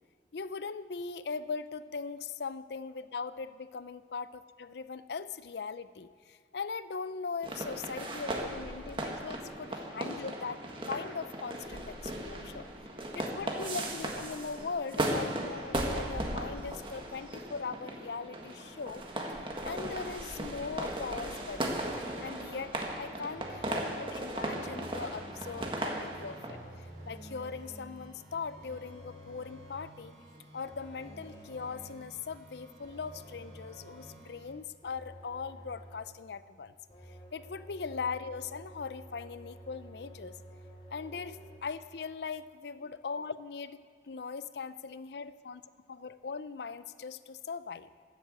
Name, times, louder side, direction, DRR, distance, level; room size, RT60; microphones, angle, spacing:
voice 1, 0.3-10.6 10.9-12.7 13.1-21.9 22.2-30.1 30.5-36.7 37.1-40.4 40.9-45.6 45.9-47.9, left 5 dB, 70° left, 14 dB, 0.5 m, -40 dB
sound 1, 7.4-26.5, right 1 dB, 30° right, 1.6 m, -37 dB
sound 2, 19.5-34.5, right 1 dB, 70° right, 4.6 m, -55 dB
sound 3, 23.3-23.9 24.4-25.9 26.5-28.0 28.6-30.0 30.7-32.1 32.8-34.4 34.8-36.2 36.9-41.6, equal, 30° left, 2.2 m, -51 dB
12.5 x 9.2 x 7.8 m, 2.1 s
head